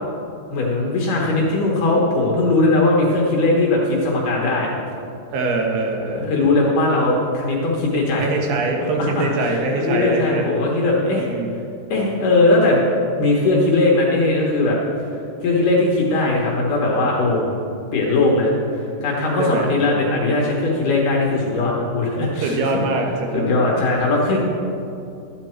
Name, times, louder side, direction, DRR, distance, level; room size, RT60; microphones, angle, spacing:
voice 1, 0.5-4.7 6.2-8.3 9.0-11.3 11.9-12.8 13.2-14.8 15.4-17.5 17.9-22.8 23.3-24.4, left 2 dB, 70° left, -3 dB, 2.0 m, -19 dB
voice 2, 5.3-6.3 8.1-10.5 11.1-11.5 19.4-19.7 22.4-23.8, right 3 dB, 70° right, 1 dB, 3.0 m, -23 dB
13.0 x 9.9 x 4.4 m, 2.6 s
omnidirectional pair, 5.3 m